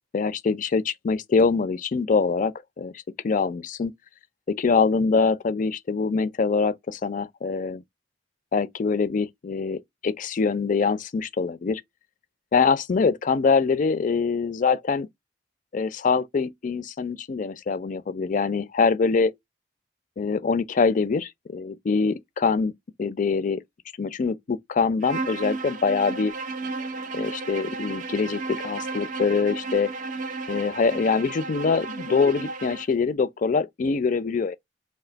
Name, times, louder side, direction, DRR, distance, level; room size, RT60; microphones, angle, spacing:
voice 1, 0.1-3.9 4.5-7.8 8.5-11.8 12.5-15.1 15.7-19.3 20.2-22.7 23.0-23.6 24.0-26.3 27.1-29.9 30.5-34.6, left 4 dB, 45° left, 0.4 m, -24 dB
Bowed string instrument, 25.0-32.9, right 3 dB, 45° right, 0.4 m, -33 dB
3.3 x 2.7 x 3.9 m
head